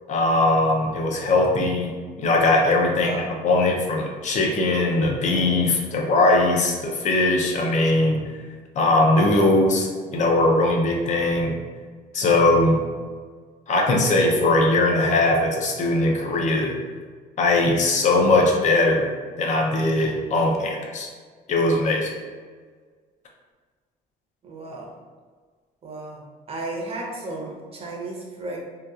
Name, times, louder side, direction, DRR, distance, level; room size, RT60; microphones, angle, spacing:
voice 1, 0.1-1.9 2.2-8.2 8.8-11.6 12.1-12.8 13.7-16.8 17.4-19.1 19.4-21.1 21.5-22.1, left 2 dB, 45° left, 1 dB, 0.5 m, -20 dB
voice 2, 2.9-3.3 24.4-24.9 25.8-26.2 26.5-28.6, right 2 dB, 35° right, -2 dB, 0.7 m, -33 dB
2.8 x 2.3 x 2.3 m, 1.5 s
cardioid pair, 110°, 17 cm